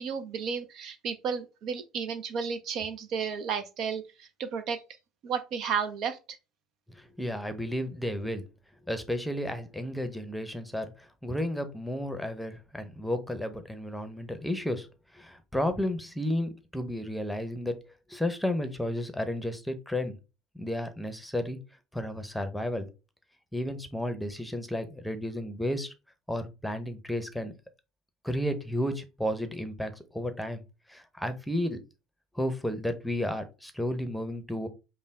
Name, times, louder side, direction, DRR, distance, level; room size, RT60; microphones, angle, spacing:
voice 1, 0.0-4.8 5.2-6.2, right 6 dB, 50° right, 0.5 m, -33 dB
voice 2, 6.9-8.4 8.9-14.9 15.1-17.8 18.1-20.2 20.5-21.6 21.9-22.9 23.5-25.9 26.3-27.5 28.2-30.6 30.9-31.8 32.3-34.7, left 1 dB, 5° left, 0.8 m, -32 dB
5.4 x 2.2 x 3.6 m
figure-of-eight pair, 60°, 0 cm